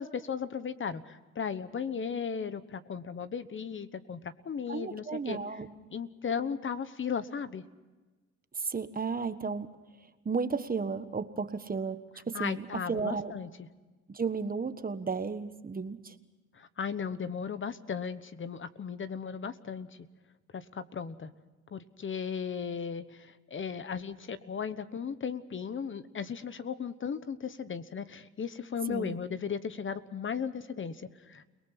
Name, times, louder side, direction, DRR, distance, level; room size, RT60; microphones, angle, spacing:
voice 1, 0.0-5.4 5.9-7.6 12.3-13.5 16.5-19.9 20.5-21.3 21.7-31.4, left 6 dB, 40° left, 13 dB, 1.1 m, -36 dB
voice 2, 4.7-5.7 8.5-9.7 10.2-12.0 12.3-13.3 14.1-16.1 28.9-29.1, right 5 dB, 30° right, 10 dB, 1.5 m, -33 dB
30.0 x 19.0 x 5.9 m, 1.2 s
cardioid pair, 90°, 30 cm